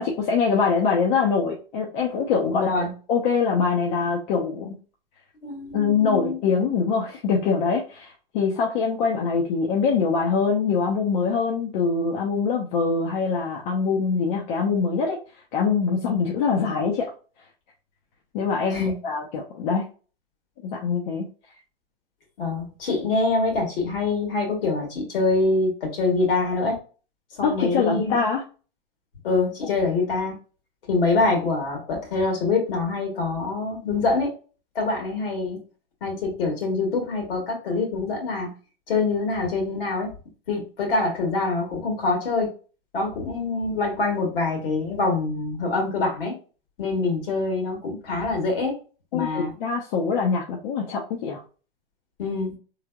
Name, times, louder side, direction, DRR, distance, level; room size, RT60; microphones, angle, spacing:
voice 1, 0.0-4.7 5.7-15.2 15.5-17.1 18.3-19.9 20.6-21.3 27.4-28.4 29.6-29.7 49.1-51.4, left 5 dB, 55° left, -1 dB, 0.8 m, -24 dB
voice 2, 2.5-2.9 5.4-6.4 18.7-19.0 22.4-26.8 27.3-28.2 29.2-30.3 30.9-34.3 34.8-35.6 36.0-38.5 38.9-40.1 40.5-42.5 42.9-46.3 46.8-48.8 49.1-49.5 52.2-52.6, left 3 dB, 70° left, 1 dB, 1.8 m, -25 dB
3.5 x 3.3 x 2.3 m, 0.36 s
hypercardioid pair, 120°, 29 cm